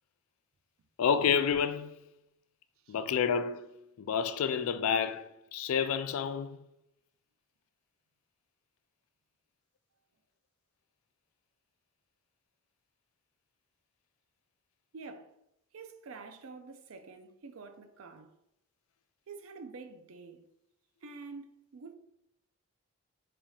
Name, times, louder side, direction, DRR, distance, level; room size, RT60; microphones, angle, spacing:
voice 1, 1.0-2.0 2.9-3.6 4.0-6.6, left 7 dB, 75° left, 0.3 m, -29 dB
voice 2, 14.9-15.4 15.7-18.3 19.3-20.4 21.0-22.0, right 4 dB, 75° right, 0.4 m, -47 dB
4.9 x 2.8 x 2.4 m
head